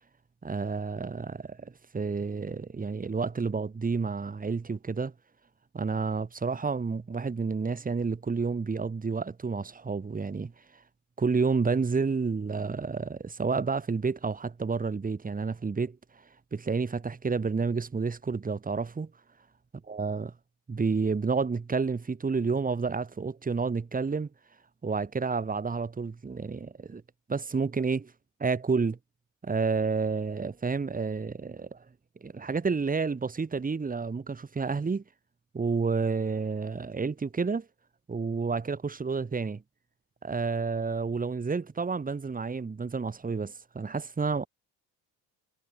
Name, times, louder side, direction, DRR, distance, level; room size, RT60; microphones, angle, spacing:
voice 1, 0.4-5.1 5.7-10.5 11.2-16.0 16.5-19.1 19.9-20.3 20.7-24.3 24.8-27.0 27.3-28.1 28.4-29.0 29.4-31.8 32.2-35.0 35.5-37.7 38.1-39.6 40.2-44.5, right 4 dB, 25° right, 5.3 m, -30 dB
supercardioid pair, 100°, 36 cm